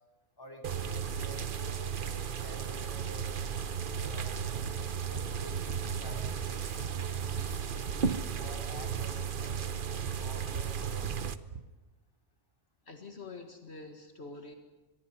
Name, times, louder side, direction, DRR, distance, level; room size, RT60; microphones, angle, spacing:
voice 1, 0.4-4.6 5.0-11.5, equal, 20° left, 2 dB, 3.4 m, -50 dB
sound 1, 0.6-11.4, right 7 dB, 50° right, 1.0 m, -35 dB
sound 2, 4.0-4.2 4.6-4.8 5.1-6.0 6.2-8.1 8.3-8.6 8.9-9.1 9.5-9.7 10.0-11.7, right 5 dB, 80° right, 1.5 m, -43 dB
voice 2, 12.9-14.5, left 3 dB, 65° left, 5 dB, 2.0 m, -46 dB
24.0 x 23.0 x 5.6 m, 1.2 s
omnidirectional pair, 1.2 m